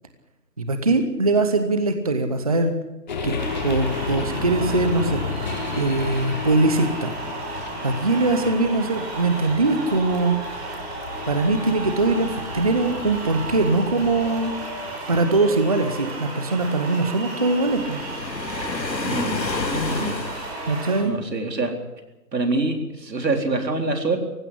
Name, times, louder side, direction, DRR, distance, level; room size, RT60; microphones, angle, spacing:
voice 1, 0.6-2.7 3.2-3.4 3.6-7.1 7.8-10.4 11.3-14.5 15.1-18.0 20.6-21.1, right 2 dB, 20° right, 8 dB, 0.8 m, -22 dB
sound 1, 3.1-19.4, left 4 dB, 25° left, 1.5 m, -34 dB
sound 2, 3.4-21.0, right 3 dB, 40° right, 5.7 m, -34 dB
Waves surf, 17.6-21.1, left 3 dB, 90° left, 2.7 m, -29 dB
voice 2, 19.0-20.2 21.0-21.7 22.3-24.2, right 2 dB, 80° right, 5 dB, 4.1 m, -25 dB
18.5 x 16.0 x 10.0 m, 1.0 s
figure-of-eight pair, 160°, 50 cm